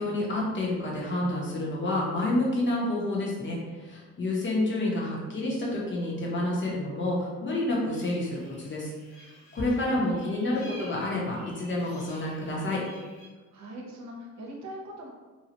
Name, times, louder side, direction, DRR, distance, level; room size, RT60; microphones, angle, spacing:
voice 1, 0.0-8.9 9.5-12.8, left 1 dB, 40° left, -3 dB, 1.0 m, -29 dB
sound 1, 7.9-13.3, equal, 85° left, 1.0 m, -51 dB
voice 2, 10.4-10.8 13.5-15.1, equal, 65° right, -1 dB, 0.8 m, -42 dB
2.8 x 2.3 x 2.9 m, 1.3 s
cardioid pair, 90°, 30 cm